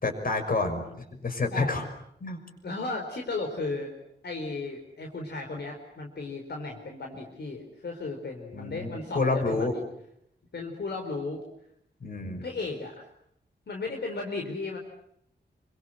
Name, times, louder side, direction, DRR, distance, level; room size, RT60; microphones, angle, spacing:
voice 1, 0.0-0.9 1.2-1.8 2.2-2.4 8.5-9.7 12.0-12.4, left 3 dB, 50° left, 6 dB, 6.1 m, -28 dB
voice 2, 2.6-3.9 4.2-9.8 10.5-11.4 12.4-13.1 13.7-14.8, left 3 dB, 70° left, 2 dB, 4.5 m, -35 dB
29.0 x 25.5 x 7.7 m, 0.74 s
wide cardioid pair, 140°, 18 cm